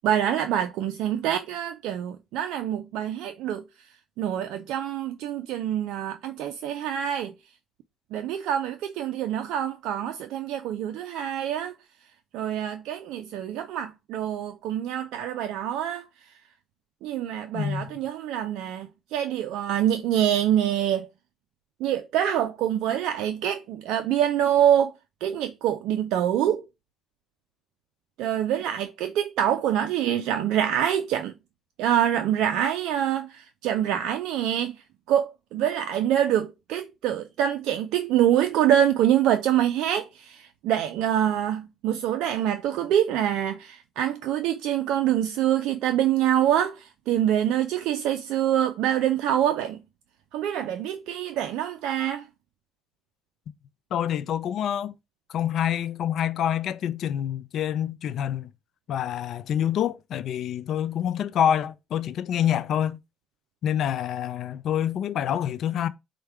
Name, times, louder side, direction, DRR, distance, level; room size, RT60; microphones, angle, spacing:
voice 1, 0.0-3.6 4.2-7.3 8.1-11.7 12.3-16.0 17.0-21.1 21.8-24.9 25.2-26.6 28.2-31.3 31.8-34.8 35.1-49.8 50.3-52.3, right 10 dB, 80° right, 0.4 m, -25 dB
voice 2, 17.5-18.0 53.9-55.0 55.3-58.5 58.9-63.0 63.6-65.9, left 10 dB, 65° left, 0.4 m, -27 dB
4.5 x 2.2 x 4.7 m
supercardioid pair, 70°, 0 cm